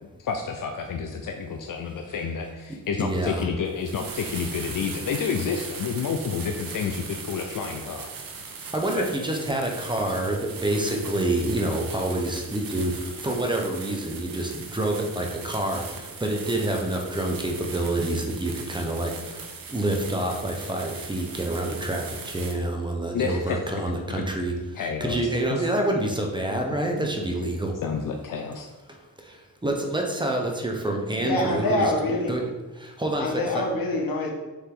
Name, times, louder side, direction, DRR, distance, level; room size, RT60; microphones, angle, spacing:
voice 1, 0.2-8.1 9.0-9.1 23.1-23.6 24.1-24.2 24.8-25.2 25.5-25.6 26.9-27.1 27.8-28.7, left 6 dB, 70° left, 4 dB, 0.6 m, -29 dB
voice 2, 2.7-3.5 8.7-19.4 19.7-27.8 29.2-31.9 32.3-32.5 32.8-33.6, right 1 dB, 15° right, 1 dB, 0.8 m, -27 dB
sound 1, 3.7-22.5, right 5 dB, 80° right, 0.9 m, -39 dB
voice 3, 31.2-32.4 33.2-34.3, left 2 dB, 85° left, 0 dB, 1.4 m, -25 dB
6.6 x 4.8 x 3.8 m, 1.2 s
wide cardioid pair, 155°, 34 cm